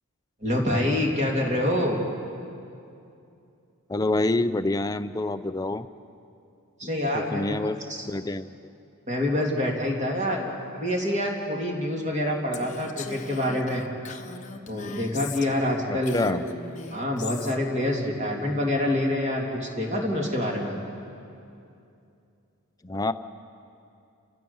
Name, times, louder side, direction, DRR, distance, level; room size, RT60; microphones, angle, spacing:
voice 1, 0.4-2.0 6.8-8.1 9.1-13.8 14.7-16.4 16.9-20.7, left 1 dB, 30° right, -1 dB, 3.0 m, -26 dB
voice 2, 3.9-5.9 7.1-7.8 8.1-8.5 15.9-16.4 22.8-23.1, left 2 dB, 15° left, 10 dB, 0.5 m, -27 dB
Female speech woman speaking, 12.5-15.7 16.0-17.6, left 4 dB, 35° left, 1.0 m, -39 dB
30.0 x 15.0 x 7.1 m, 2.6 s
head